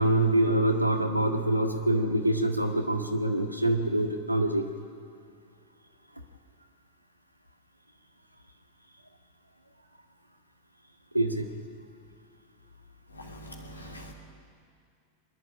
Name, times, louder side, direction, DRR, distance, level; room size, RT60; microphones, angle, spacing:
voice 1, 0.0-4.7 11.1-11.5, right 1 dB, 90° right, 4 dB, 1.7 m, -25 dB
voice 2, 13.3-14.1, equal, 80° left, 1 dB, 2.8 m, -43 dB
24.0 x 11.5 x 9.9 m, 2.4 s
figure-of-eight pair, 90°, 0 cm